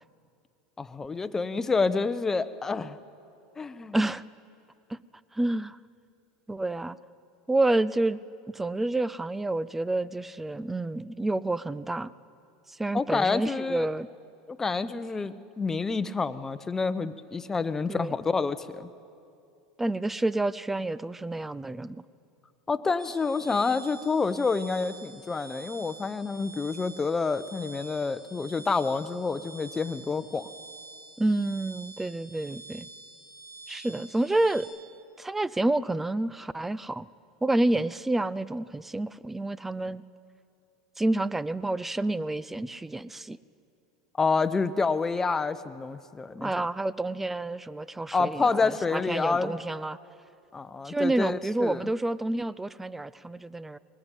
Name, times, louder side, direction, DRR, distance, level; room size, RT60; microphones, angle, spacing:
voice 1, 0.8-3.0 3.6-4.0 12.9-13.9 14.5-18.9 22.7-30.5 44.2-46.5 48.1-49.5 50.5-51.8, left 4 dB, 20° left, 12 dB, 0.9 m, -28 dB
voice 2, 3.9-4.2 4.9-5.0 5.3-5.8 6.5-7.0 7.5-8.2 8.5-12.1 12.7-14.1 17.9-18.1 19.8-22.0 31.2-32.9 33.7-34.7 35.2-37.1 37.4-40.0 41.0-43.4 46.4-50.0 50.8-53.8, right 2 dB, 10° right, 18 dB, 0.6 m, -29 dB
sound 1, 23.0-34.6, right 3 dB, 70° right, 7.1 m, -47 dB
21.5 x 18.5 x 9.2 m, 2.6 s
hypercardioid pair, 95°, 2 cm